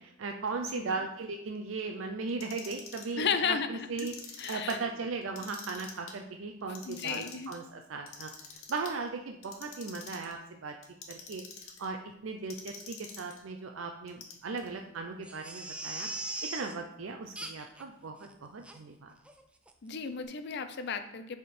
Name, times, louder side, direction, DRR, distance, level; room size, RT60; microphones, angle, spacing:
voice 1, 0.2-4.1 4.5-8.3 8.7-10.7 11.1-11.4 11.8-12.0 12.2-16.1 16.5-19.1, right 4 dB, 65° right, 4 dB, 0.5 m, -37 dB
Clock, 2.3-3.1 3.8-4.8 5.2-6.1 6.6-7.6 8.1-8.9 9.4-10.3 10.8-11.9 12.5-13.4 14.1-14.7, left 6 dB, 80° left, 1.0 m, -46 dB
voice 2, 3.2-4.1 4.4-4.8 6.9-7.5 19.8-21.4, left 6 dB, 55° left, 9 dB, 0.5 m, -33 dB
Crying sobbing, 15.2-16.7 17.3-17.8 18.2-18.3 18.6-18.8 19.2-19.4 19.7-19.8, right 2 dB, 5° right, 0.3 m, -39 dB
6.2 x 3.7 x 4.3 m, 0.77 s
head